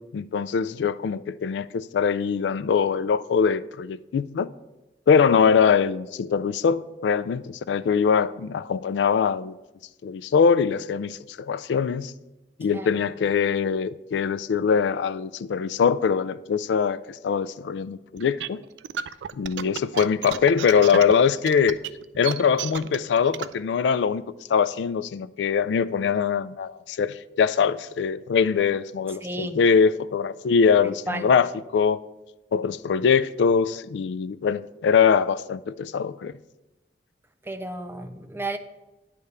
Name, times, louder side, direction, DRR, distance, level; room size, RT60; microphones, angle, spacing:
voice 1, 0.0-4.5 5.1-9.6 10.0-12.1 12.6-18.6 19.3-21.8 22.2-24.2 24.5-32.0 32.5-36.3, left 6 dB, 75° left, 0.3 m, -22 dB
sound 1, 18.2-23.5, right 9 dB, 75° right, 0.3 m, -33 dB
voice 2, 29.2-29.6 31.1-31.3 37.4-38.6, right 1 dB, 15° right, 0.5 m, -32 dB
9.5 x 3.4 x 6.6 m
head